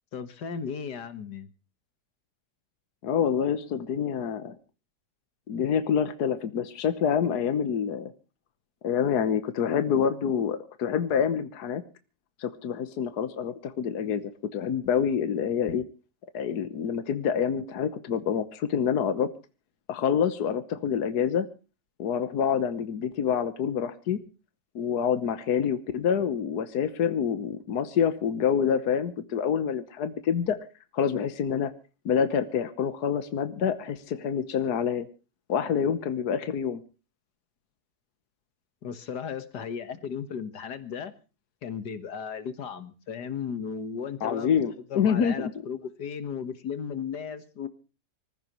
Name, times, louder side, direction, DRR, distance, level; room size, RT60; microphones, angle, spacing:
voice 1, 0.1-1.5 38.8-41.1 41.6-44.6 44.9-47.7, left 7 dB, 90° left, 11 dB, 2.0 m, -35 dB
voice 2, 3.0-4.5 5.5-8.1 8.8-11.8 12.4-14.2 14.5-15.8 16.3-19.3 19.9-21.5 22.0-24.2 24.8-30.6 30.9-31.7 32.1-35.1 35.5-36.8 44.2-45.5, left 7 dB, 75° left, 11 dB, 1.6 m, -27 dB
25.0 x 15.0 x 3.0 m, 0.34 s
omnidirectional pair, 1.7 m